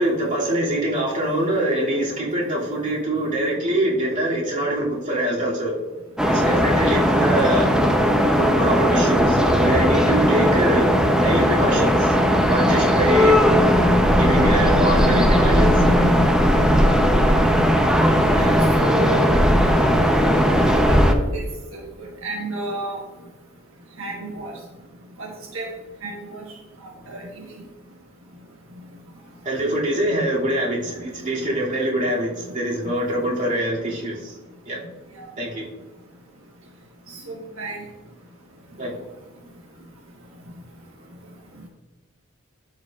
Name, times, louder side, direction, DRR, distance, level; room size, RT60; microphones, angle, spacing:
voice 1, 0.0-5.7 6.3-7.7 8.4-10.9 11.2-12.2 12.5-13.4 14.2-16.0 29.4-34.4 34.7-34.8 35.4-35.6 38.8-39.0, right 1 dB, 40° right, -6 dB, 2.5 m, -24 dB
sound 1, 6.2-21.1, equal, 5° right, 0.6 m, -17 dB
voice 2, 18.4-19.2 20.7-23.0 24.0-24.5 25.2-25.7 26.0-26.4 27.1-27.4 35.2-35.3 37.1-37.8, right 2 dB, 70° right, -2 dB, 1.3 m, -32 dB
12.5 x 4.8 x 2.4 m, 1.2 s
head